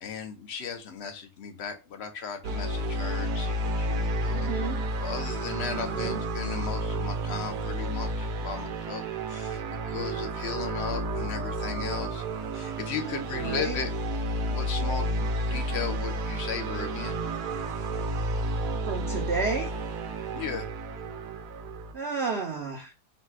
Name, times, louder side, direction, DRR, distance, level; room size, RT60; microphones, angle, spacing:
voice 1, 0.0-4.5 4.8-9.0 9.3-12.2 12.5-13.9 14.5-17.2 20.3-20.7, left 6 dB, 55° left, 7 dB, 0.8 m, -36 dB
sound 1, 2.4-21.9, right 1 dB, 85° right, 1.2 m, -31 dB
voice 2, 4.3-4.8 5.8-6.2 13.3-13.8 18.8-19.7 21.9-22.9, right 5 dB, 55° right, 1 dB, 0.7 m, -31 dB
4.1 x 2.3 x 4.4 m, 0.29 s
omnidirectional pair, 1.6 m